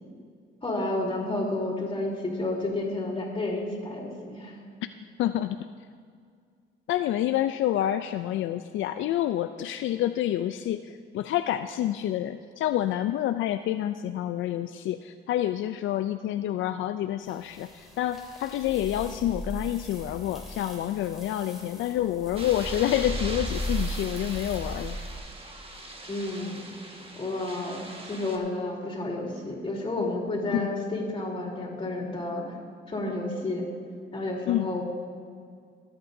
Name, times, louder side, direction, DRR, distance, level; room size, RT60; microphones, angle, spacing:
voice 1, 0.6-4.5 26.1-26.6 27.2-27.8 28.1-32.4 32.9-33.6 34.1-34.8, left 2 dB, 25° left, -3 dB, 3.4 m, -31 dB
voice 2, 5.2-5.6 6.9-25.0 30.5-30.7 34.5-34.7, left 12 dB, 75° left, 9 dB, 0.4 m, -28 dB
sound 1, 17.3-25.2, equal, ahead, 2.7 m, -37 dB
sound 2, 22.4-28.4, right 2 dB, 30° right, 1.6 m, -41 dB
23.0 x 8.7 x 2.7 m, 2.1 s
cardioid pair, 90°, 20 cm